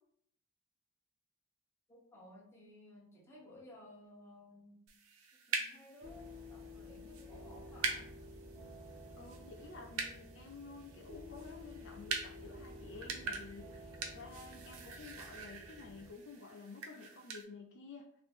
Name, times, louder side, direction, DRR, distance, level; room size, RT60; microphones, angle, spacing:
voice 1, 1.9-4.8 5.3-8.1, left 1 dB, 10° left, -4 dB, 0.8 m, -57 dB
sound 1, 4.9-17.4, right 4 dB, 65° right, 0.5 m, -44 dB
sound 2, 6.0-16.1, left 1 dB, 40° right, 1.0 m, -52 dB
voice 2, 9.2-18.0, left 3 dB, 55° left, 1 dB, 0.4 m, -51 dB
2.8 x 2.6 x 3.5 m, 0.67 s
head